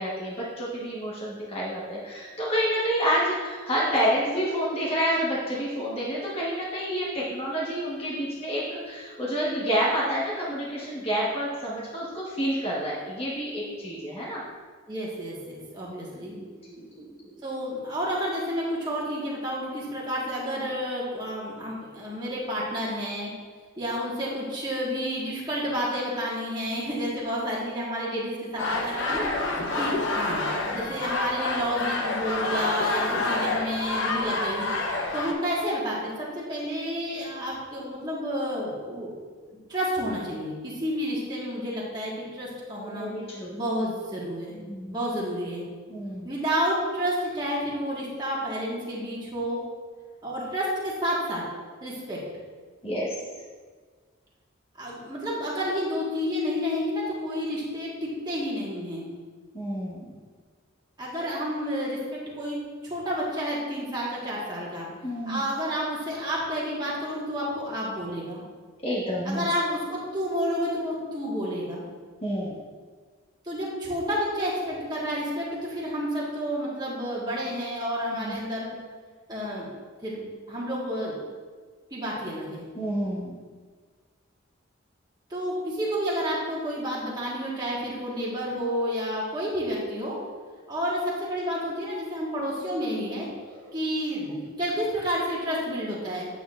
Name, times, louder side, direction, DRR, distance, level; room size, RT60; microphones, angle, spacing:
voice 1, 0.0-14.4 16.3-17.3 29.1-29.9 30.6-30.8 42.8-43.5 44.5-44.9 45.9-46.3 52.8-53.2 59.5-60.1 65.0-65.4 68.8-69.5 72.2-72.6 78.1-78.3 82.7-83.4, equal, 25° left, -7 dB, 1.2 m, -29 dB
voice 2, 14.9-16.3 17.4-23.3 23.8-29.3 29.8-30.4 30.7-34.7 35.1-39.1 39.5-43.1 43.5-44.5 44.9-45.6 46.2-49.6 50.2-51.4 51.8-52.2 54.8-59.1 61.0-64.9 65.2-68.4 69.2-71.8 73.4-78.7 79.3-79.7 80.0-80.2 80.5-81.2 81.9-82.7 85.3-90.2 90.7-93.3 93.7-96.3, equal, 20° right, -6 dB, 1.5 m, -30 dB
sound 1, 28.6-35.3, left 2 dB, 55° left, 0.9 m, -28 dB
9.2 x 7.8 x 2.5 m, 1.5 s
head